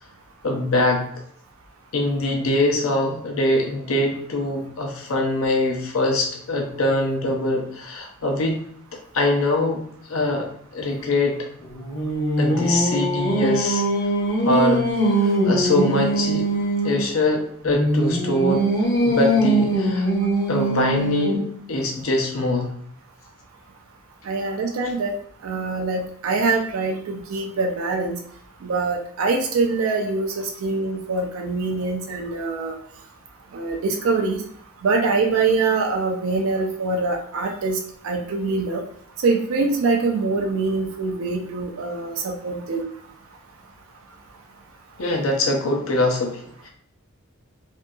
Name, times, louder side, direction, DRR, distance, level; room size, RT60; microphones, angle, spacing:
voice 1, 0.4-1.0 1.9-8.6 9.1-9.8 10.1-11.4 12.4-13.8 14.4-14.9 15.2-16.5 16.8-18.7 19.0-20.1 20.5-21.4 21.7-22.7 45.0-46.7, left 1 dB, 75° left, 1 dB, 0.6 m, -23 dB
Singing, 11.6-17.0 17.6-21.5, right 1 dB, 45° left, 0.8 m, -22 dB
voice 2, 24.2-25.1 25.4-28.2 28.6-32.7 33.5-34.4 34.8-37.8 38.0-38.8 39.2-42.9, right 3 dB, 75° right, 2 dB, 0.4 m, -24 dB
2.6 x 2.6 x 2.3 m, 0.64 s
head